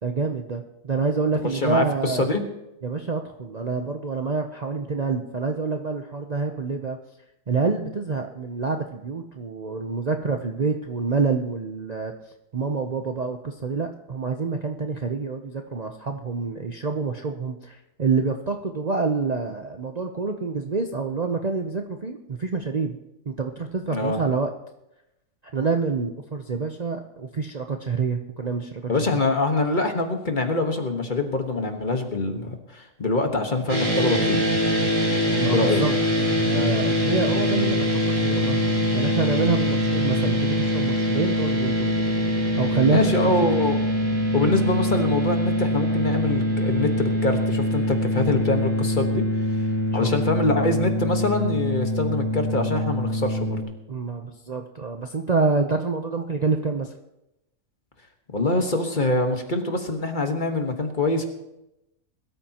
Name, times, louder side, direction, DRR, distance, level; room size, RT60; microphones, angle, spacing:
voice 1, 0.0-2.3 2.8-7.0 7.5-12.1 12.5-23.0 23.3-24.5 25.5-29.1 35.3-35.9 36.2-38.6 38.9-42.0 42.6-43.3 49.9-50.1 53.9-56.9, right 4 dB, 40° right, 4 dB, 0.7 m, -27 dB
voice 2, 1.4-2.4 23.9-24.2 28.9-34.4 35.5-35.8 42.9-43.8 44.3-49.5 49.9-53.6 58.3-61.2, left 2 dB, 35° left, 5 dB, 1.5 m, -24 dB
sound 1, 33.7-53.6, left 1 dB, 85° right, 5.7 m, -23 dB
21.0 x 13.0 x 2.9 m, 0.88 s
omnidirectional pair, 1.4 m